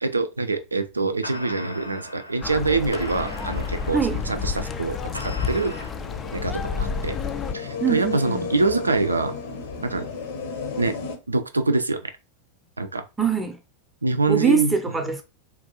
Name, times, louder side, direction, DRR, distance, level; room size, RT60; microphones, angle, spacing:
voice 1, 0.0-5.7 6.3-7.2 7.5-9.3 9.8-10.1 10.8-10.9 11.3-12.0 12.8-13.0 14.0-14.8, right 3 dB, 80° right, 0.3 m, -25 dB
sound 1, 0.7-0.9 1.2-5.9, left 1 dB, 90° left, 0.4 m, -39 dB
sound 2, 2.4-7.5, left 6 dB, 20° left, 0.3 m, -30 dB
sound 3, 3.3-11.2, left 5 dB, 55° left, 0.7 m, -34 dB
voice 2, 7.8-8.5 13.2-13.6 14.3-15.2, right 5 dB, 10° right, 0.6 m, -23 dB
3.8 x 2.4 x 2.7 m
figure-of-eight pair, 90°, 0 cm